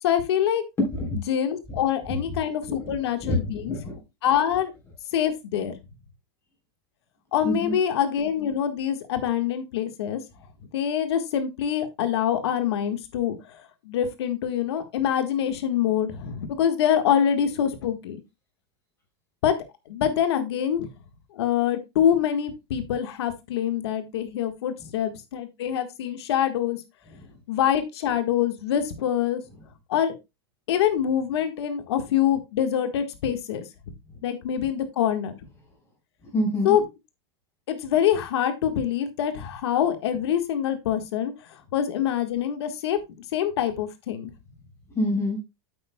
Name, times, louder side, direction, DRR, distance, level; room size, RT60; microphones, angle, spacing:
voice 1, 0.0-0.6 1.3-3.7 4.2-4.7 5.1-5.7 7.3-10.2 10.7-18.2 19.4-19.5 19.9-20.9 21.3-26.8 27.5-29.4 29.9-30.1 30.7-33.6 34.2-35.3 36.6-36.8 37.7-43.0 43.3-44.3, left 9 dB, 80° left, 8 dB, 1.5 m, -25 dB
voice 2, 0.8-1.1 2.8-2.9 3.2-3.4 3.7-4.0 7.4-7.7 36.3-36.7 44.9-45.4, left 1 dB, 20° left, -1 dB, 3.5 m, -25 dB
8.8 x 8.4 x 2.2 m, 0.23 s
supercardioid pair, 160°, 13 cm